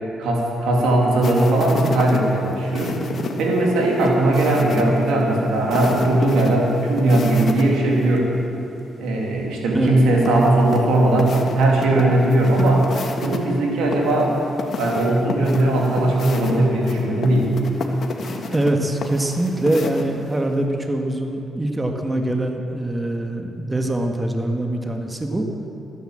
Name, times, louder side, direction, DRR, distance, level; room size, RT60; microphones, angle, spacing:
voice 1, 0.2-2.9 3.4-8.3 9.0-12.9 13.2-14.4 14.8-17.5, right 1 dB, 85° right, -2 dB, 2.7 m, -18 dB
sound 1, 1.2-7.6 7.9-8.0 10.2-13.4 13.9-20.4, left 3 dB, 60° left, 1.5 m, -31 dB
voice 2, 18.5-25.5, right 1 dB, 20° right, 3 dB, 1.5 m, -23 dB
14.0 x 9.8 x 7.6 m, 2.9 s
cardioid pair, 70°, 0 cm